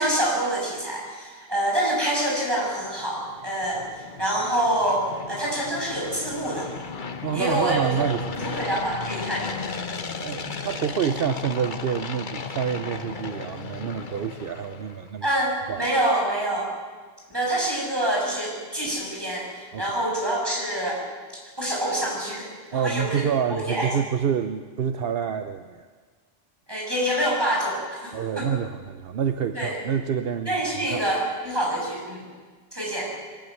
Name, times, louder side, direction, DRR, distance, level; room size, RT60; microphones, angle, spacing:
voice 1, 0.0-6.7 7.3-8.1 8.4-9.5 15.2-16.7 17.3-21.0 21.6-23.9 26.7-28.5 29.5-29.7 30.5-32.2 32.7-33.1, right 1 dB, 25° right, -3 dB, 7.1 m, -26 dB
sound 1, 2.8-15.1, left 5 dB, 50° left, 1.3 m, -35 dB
voice 2, 7.2-8.6 10.2-15.3 15.7-15.9 19.7-19.9 22.7-25.9 28.1-31.1, right 8 dB, 70° right, 9 dB, 1.0 m, -28 dB
22.5 x 14.0 x 9.5 m, 1.5 s
omnidirectional pair, 1.0 m